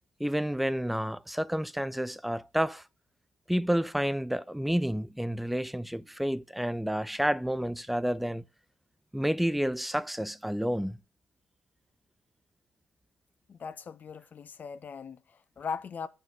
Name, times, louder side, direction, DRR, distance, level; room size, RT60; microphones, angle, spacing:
voice 1, 0.2-2.8 3.5-8.4 9.1-11.0, equal, ahead, 0.5 m, -30 dB
voice 2, 13.5-16.1, left 6 dB, 45° left, 0.9 m, -39 dB
11.0 x 4.6 x 6.6 m
hypercardioid pair, 50°, 4 cm